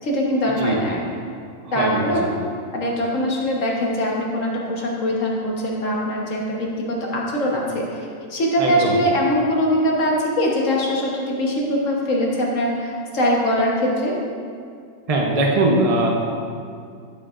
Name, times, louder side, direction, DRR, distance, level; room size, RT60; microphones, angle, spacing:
voice 1, 0.0-1.0 1.7-2.3 2.7-14.1, equal, 75° left, -3 dB, 1.6 m, -22 dB
voice 2, 1.8-2.3 8.6-9.0 15.1-16.1, right 2 dB, 30° right, -1 dB, 0.9 m, -20 dB
12.0 x 7.7 x 2.5 m, 2.3 s
omnidirectional pair, 1.4 m